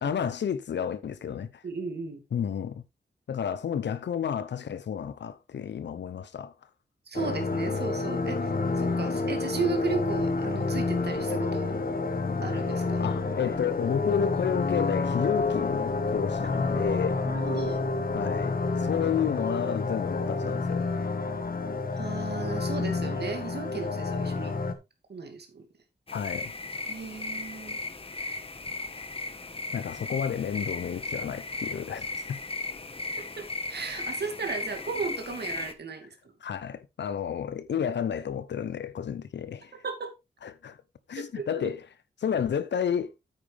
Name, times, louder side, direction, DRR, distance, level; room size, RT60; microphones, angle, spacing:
voice 1, 0.0-1.6 2.3-2.8 3.3-6.5 13.0-17.2 18.1-20.9 26.1-26.5 29.7-32.4 36.4-39.8 40.4-40.8 41.1-41.8 42.2-43.1, left 8 dB, 90° left, 0.7 m, -31 dB
voice 2, 1.6-2.2 7.1-11.7 12.4-13.1 16.4-16.6 17.2-17.8 21.9-24.5 25.1-25.7 26.9-27.8 33.2-36.3 39.8-40.1 41.2-41.7, right 4 dB, 70° right, 2.3 m, -35 dB
sound 1, 7.1-24.7, left 3 dB, 55° left, 1.6 m, -29 dB
sound 2, 26.1-35.7, left 2 dB, 30° left, 1.3 m, -36 dB
9.0 x 8.9 x 3.4 m
wide cardioid pair, 90°, 18 cm